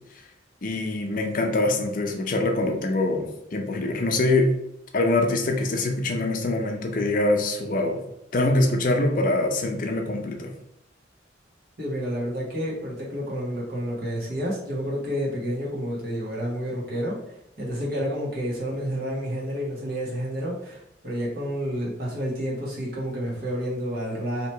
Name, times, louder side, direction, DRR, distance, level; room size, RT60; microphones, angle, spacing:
voice 1, 0.6-4.5 4.9-8.0 8.3-10.5, left 2 dB, 45° left, 3 dB, 0.6 m, -24 dB
voice 2, 11.8-17.2 17.6-24.5, equal, 55° right, -4 dB, 1.4 m, -29 dB
3.0 x 2.9 x 4.4 m, 0.80 s
head